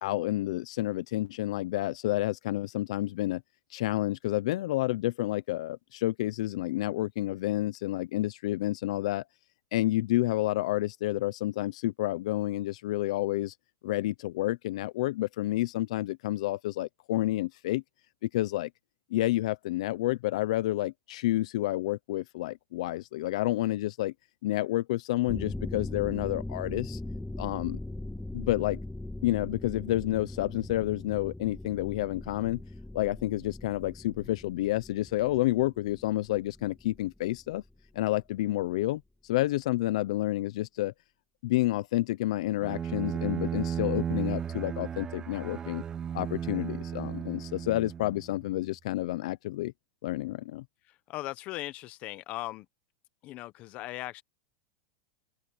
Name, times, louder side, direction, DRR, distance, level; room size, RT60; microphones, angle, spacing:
voice 1, 0.0-3.4 3.7-9.2 9.7-13.5 13.8-17.8 18.2-18.7 19.1-24.1 24.4-27.0 27.4-27.8 28.3-28.8 29.2-32.6 32.9-37.6 37.9-40.9 41.4-45.8 46.1-49.7 50.0-50.6, left 16 dB, 70° left, 0.6 m, -29 dB
sound 1, 25.3-37.4 37.7-37.8, left 2 dB, 5° left, 2.0 m, -40 dB
Bowed string instrument, 42.6-48.4, right 8 dB, 20° right, 0.3 m, -34 dB
voice 2, 51.1-52.7 53.2-54.2, left 17 dB, 40° left, 1.0 m, -38 dB
open air
supercardioid pair, 145°, 4 cm